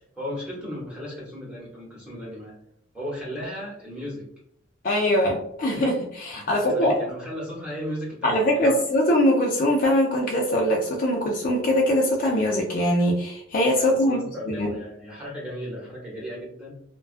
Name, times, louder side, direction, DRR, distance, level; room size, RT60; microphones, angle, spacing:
voice 1, 0.2-2.5 2.9-4.3 6.3-8.8 13.7-16.7, equal, 5° right, -6 dB, 0.9 m, -35 dB
voice 2, 4.8-6.9 8.2-14.2 14.5-14.7, equal, 40° left, -1 dB, 0.3 m, -22 dB
2.3 x 2.2 x 2.4 m, 0.73 s
head